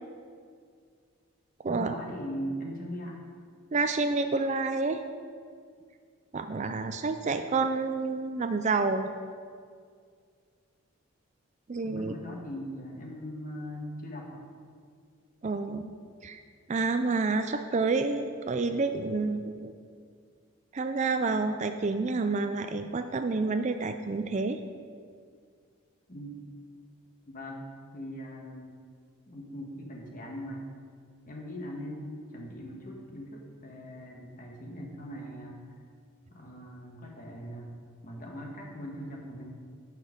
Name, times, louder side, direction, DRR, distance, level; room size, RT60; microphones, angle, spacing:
voice 1, 1.7-3.2 11.8-14.4 26.1-26.4 27.3-27.6 27.9-28.7 29.3-30.6 31.3-35.6 36.3-37.7 38.0-39.5, equal, 40° left, 0 dB, 1.5 m, -40 dB
voice 2, 3.7-5.0 6.3-9.1 11.7-12.1 15.4-16.4 16.7-19.7 20.7-24.6, right 3 dB, 35° right, 8 dB, 0.4 m, -29 dB
10.5 x 7.5 x 5.1 m, 2.1 s
head